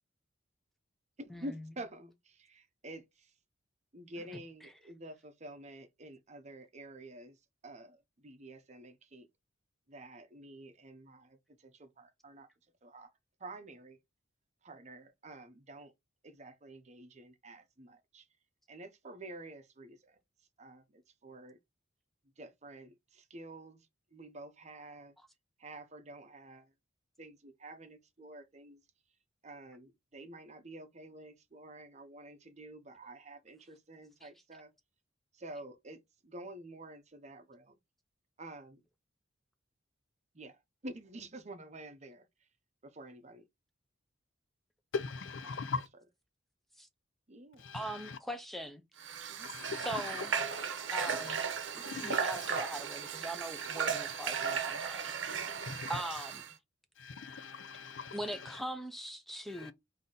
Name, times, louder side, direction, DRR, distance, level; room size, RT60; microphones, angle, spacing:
voice 1, 1.2-3.3 3.9-9.3 9.9-12.5 12.8-13.1 13.4-14.0 14.6-15.9 16.2-18.3 18.7-20.2 20.6-21.6 22.4-25.2 25.6-26.7 27.2-28.8 29.4-34.7 35.3-37.8 38.4-38.8 40.3-42.5 42.8-43.5 45.5-45.6 47.3-47.7 49.3-49.5 55.5-55.7, right 1 dB, 35° right, 0.7 m, -49 dB
voice 2, 44.9-45.9 47.6-48.2 49.4-50.3 51.0-51.4 51.8-52.7 53.5-53.7 54.1-54.2 55.0-55.1 55.6-56.0 57.0-58.6 59.5-59.7, left 5 dB, 70° left, 0.5 m, -41 dB
voice 3, 47.7-48.8 49.9-50.3 50.9-51.4 51.7-55.5 55.9-56.4 58.1-59.7, right 1 dB, ahead, 0.6 m, -41 dB
Water / Water tap faucet, 49.0-56.5, right 6 dB, 65° right, 0.8 m, -36 dB
3.9 x 2.8 x 3.8 m
head